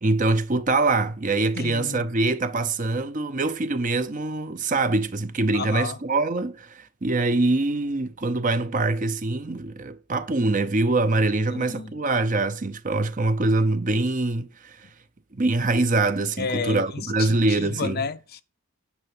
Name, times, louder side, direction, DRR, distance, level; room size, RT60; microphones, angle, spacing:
voice 1, 0.0-14.9 15.3-18.0, right 2 dB, 35° right, 0.7 m, -24 dB
voice 2, 1.5-2.0 5.5-6.0 11.5-11.9 16.4-18.4, left 5 dB, 45° left, 0.6 m, -32 dB
9.9 x 5.7 x 6.0 m
head